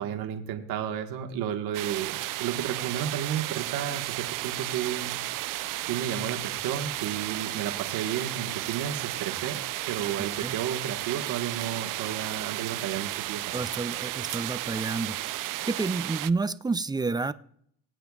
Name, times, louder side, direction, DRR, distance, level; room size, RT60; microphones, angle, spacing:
voice 1, 0.0-5.1 5.8-9.6 9.9-13.7, right 9 dB, 80° right, 4 dB, 1.4 m, -32 dB
sound 1, 1.7-16.3, right 16 dB, 60° right, 0.5 m, -33 dB
voice 2, 13.5-15.2 15.7-17.3, right 3 dB, 10° right, 13 dB, 0.3 m, -29 dB
21.5 x 9.0 x 2.3 m, 0.65 s
cardioid pair, 110°, 36 cm